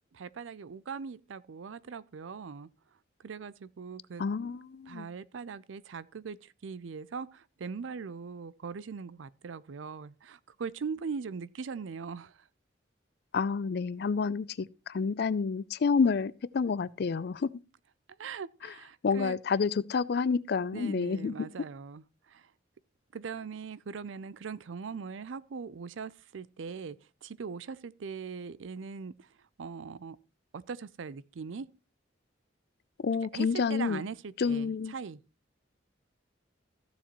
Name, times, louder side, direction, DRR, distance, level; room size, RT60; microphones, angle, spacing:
voice 1, 0.1-2.7 3.2-4.2 4.9-12.4 18.2-19.4 20.7-22.5 23.1-29.3 29.6-30.2 30.5-31.7 33.3-35.2, right 5 dB, 85° right, 0.5 m, -40 dB
voice 2, 4.2-5.1 13.3-17.5 19.0-21.5 33.0-34.0 34.4-34.9, left 5 dB, 55° left, 0.4 m, -29 dB
14.5 x 7.1 x 3.0 m
head